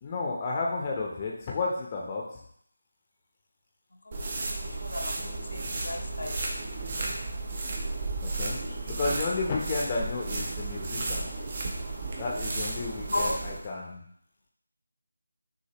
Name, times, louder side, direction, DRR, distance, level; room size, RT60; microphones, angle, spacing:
voice 1, 0.0-2.2 8.2-8.6 8.9-11.3 12.2-14.0, left 3 dB, 25° left, -2 dB, 0.7 m, -32 dB
sound 1, 4.1-13.7, right 2 dB, 35° right, 0.7 m, -33 dB
voice 2, 4.8-5.2 5.5-6.4 13.1-13.4, left 1 dB, 75° left, 1 dB, 0.8 m, -32 dB
6.3 x 2.6 x 2.9 m, 0.68 s
figure-of-eight pair, 165°, 0 cm